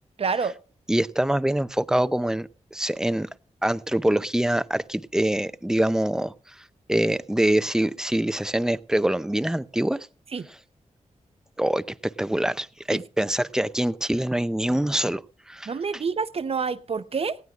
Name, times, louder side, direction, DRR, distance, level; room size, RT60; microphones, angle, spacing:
voice 1, 0.2-0.5 10.3-10.4 12.9-13.0 15.7-17.4, right 5 dB, 50° right, 0.8 m, -27 dB
voice 2, 0.9-3.3 3.6-6.3 6.9-10.1 11.6-15.7, right 1 dB, 5° right, 0.6 m, -24 dB
19.0 x 16.0 x 2.5 m
wide cardioid pair, 90°, 13 cm